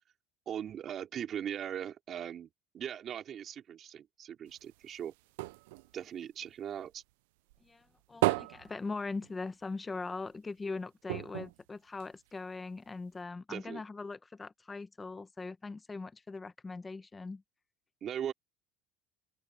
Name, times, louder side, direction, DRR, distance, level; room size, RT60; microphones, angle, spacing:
voice 1, 0.5-2.5 2.7-5.1 5.9-7.0 13.5-13.8 18.0-18.3, right 9 dB, 35° right, 4.4 m, -39 dB
sound 1, 4.5-7.1 7.5-9.7 10.1-10.2 10.5-10.6 11.1-12.6 13.2-13.3, right 21 dB, 85° right, 0.4 m, -36 dB
voice 2, 7.6-17.4, left 3 dB, 15° left, 1.1 m, -41 dB
open air
cardioid pair, 140°, 0 cm